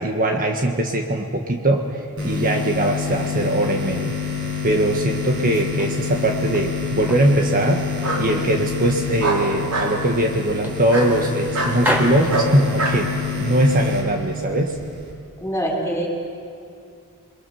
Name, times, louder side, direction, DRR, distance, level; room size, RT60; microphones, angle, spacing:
voice 1, 0.0-4.2 4.6-7.8 8.2-13.1 13.4-14.8, right 1 dB, 40° right, 3 dB, 1.5 m, -21 dB
sound 1, 2.2-15.1, left 6 dB, 60° right, 5.9 m, -28 dB
sound 2, 5.3-6.7 7.1-8.5 8.8-9.7 10.0-10.2 10.6-11.5 11.7-13.2, equal, 10° right, 3.3 m, -29 dB
Bark, 5.9-6.5 8.0-8.2 9.2-9.9 10.9-11.1 11.5-11.8 12.3-13.0, right 2 dB, 80° right, 4.7 m, -24 dB
voice 2, 15.4-16.1, equal, 10° left, 0 dB, 5.0 m, -24 dB
28.0 x 22.0 x 7.1 m, 2.4 s
head